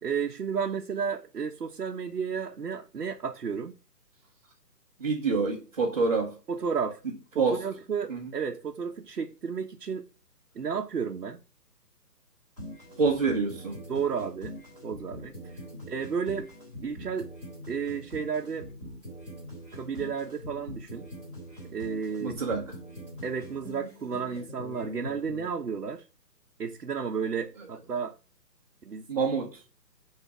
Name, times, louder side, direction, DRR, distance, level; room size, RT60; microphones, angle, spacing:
voice 1, 0.0-3.7 6.5-7.0 7.3-10.0 10.5-11.4 13.9-14.5 14.8-15.6 15.9-16.5 16.8-17.3 17.7-18.7 19.7-21.1 21.7-22.4 23.2-26.0 26.6-28.1 28.8-29.0, right 6 dB, 65° right, 1.3 m, -32 dB
voice 2, 5.0-6.3 7.4-7.6 8.1-8.3 13.0-13.8 22.2-22.6 29.1-29.6, right 4 dB, 25° right, 1.4 m, -27 dB
sound 1, 12.6-25.5, equal, 5° left, 1.7 m, -43 dB
10.0 x 3.9 x 6.0 m
hypercardioid pair, 170°, 50 cm